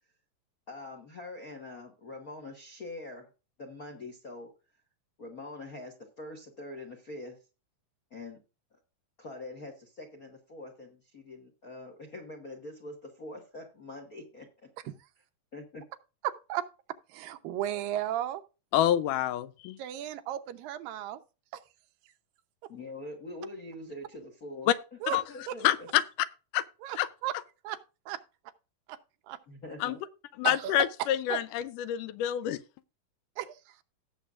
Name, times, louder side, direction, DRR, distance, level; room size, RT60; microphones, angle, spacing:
voice 1, 0.7-3.3 3.6-4.5 5.2-7.4 8.1-8.4 8.7-8.8 9.2-14.7 15.5-15.8 22.7-24.7 25.1-25.9 29.5-30.0, left 2 dB, 55° left, 1.0 m, -44 dB
voice 2, 16.2-16.6 17.1-18.4 19.8-21.2 21.5-21.6 25.0-25.2 25.5-25.6 26.8-27.3 27.6-27.8 28.1-28.2 28.9-29.0 29.3-29.4 30.4-30.7 31.0-31.4 33.4-33.6, right 12 dB, 90° right, 2.6 m, -34 dB
voice 3, 18.7-19.8 24.7-24.8 25.1-25.2 25.6-26.0 26.5-26.6 27.0-27.1 29.8-30.0 30.4-32.6, left 12 dB, 80° left, 2.1 m, -27 dB
17.5 x 7.2 x 2.5 m
omnidirectional pair, 3.9 m